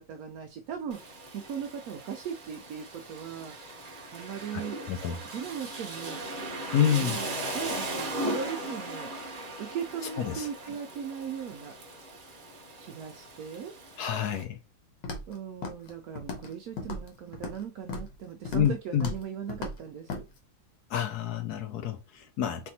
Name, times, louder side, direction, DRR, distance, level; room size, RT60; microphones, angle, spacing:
voice 1, 0.0-3.6 4.1-4.8 5.3-6.2 6.9-11.7 12.8-13.7 15.3-20.2, right 8 dB, 70° right, 0.9 m, -38 dB
Rain, 0.9-14.4, right 1 dB, 40° right, 0.7 m, -38 dB
voice 2, 4.9-5.2 6.7-7.2 10.2-10.5 14.0-14.6 18.5-19.1 20.9-22.7, left 9 dB, 70° left, 1.0 m, -28 dB
Walk footsteps, 15.0-15.3 15.6-16.5 16.8-17.6 17.9-18.1 18.4-18.7 19.0-19.2 19.5-19.8 20.1-20.2, left 2 dB, 85° left, 1.6 m, -36 dB
4.3 x 3.3 x 2.7 m
omnidirectional pair, 2.0 m